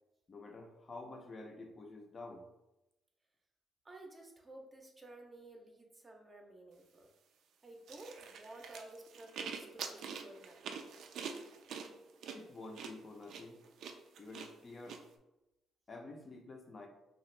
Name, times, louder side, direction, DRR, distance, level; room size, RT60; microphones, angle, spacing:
voice 1, 0.3-2.5 12.3-13.6 14.2-15.0 15.9-16.9, left 2 dB, 40° left, 3 dB, 0.5 m, -49 dB
voice 2, 3.8-7.1 7.6-10.8, right 2 dB, 25° right, 2 dB, 0.5 m, -53 dB
sound 1, 7.9-15.0, right 6 dB, 75° right, 0.3 m, -45 dB
2.8 x 2.4 x 3.1 m, 0.96 s
cardioid pair, 90°, 0 cm